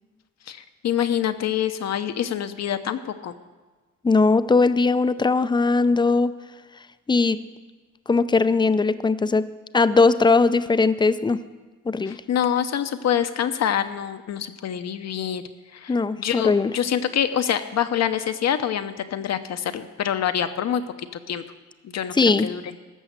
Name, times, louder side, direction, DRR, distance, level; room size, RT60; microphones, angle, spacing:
voice 1, 0.5-3.3 12.1-15.4 15.7-20.8 21.3-21.4 21.8-22.1 22.4-22.8, left 9 dB, 60° left, 9 dB, 0.8 m, -26 dB
voice 2, 4.0-6.3 7.1-7.4 8.1-9.5 9.7-11.4 11.9-12.2 15.9-16.7 22.1-22.5, left 3 dB, 15° left, 13 dB, 0.5 m, -19 dB
14.0 x 6.3 x 8.0 m, 1.3 s
cardioid pair, 90°, 30 cm